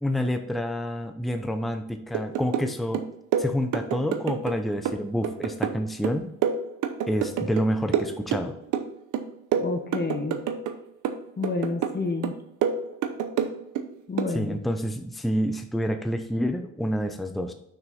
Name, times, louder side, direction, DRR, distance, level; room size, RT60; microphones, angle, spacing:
voice 1, 0.0-3.0 3.4-6.3 7.1-8.6 14.3-17.5, equal, ahead, 6 dB, 0.7 m, -28 dB
sound 1, 2.1-2.7 2.9-4.6 4.9-7.7 7.9-8.9 9.1-10.8 11.0-12.0 12.2-13.9 14.2-14.4, right 7 dB, 80° right, 0.8 m, -28 dB
voice 2, 9.5-10.4 11.4-12.4 14.1-14.6, left 3 dB, 35° left, 5 dB, 1.3 m, -29 dB
6.3 x 6.0 x 4.2 m, 0.77 s
cardioid pair, 90°, 30 cm